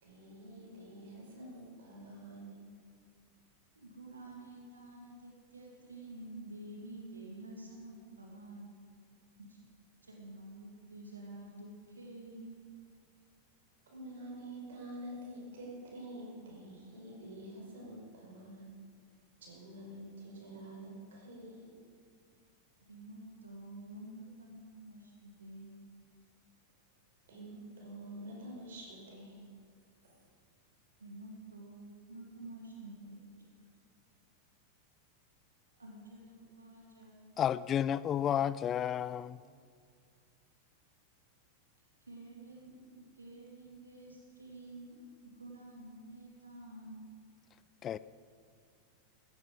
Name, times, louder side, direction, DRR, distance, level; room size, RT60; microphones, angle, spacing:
voice 1, 0.0-2.6 13.9-18.7 19.4-21.7 27.3-29.5 30.0-30.1, right 1 dB, 60° right, 5.2 m, -47 dB
voice 2, 3.8-8.7 9.4-9.6 10.0-12.7 22.9-25.7 31.0-33.4 35.8-37.3 42.1-47.0, right 1 dB, 80° right, 2.2 m, -49 dB
voice 3, 37.4-39.4 47.8-48.0, left 9 dB, 30° left, 0.3 m, -31 dB
16.0 x 14.0 x 5.3 m
figure-of-eight pair, 90°, 0 cm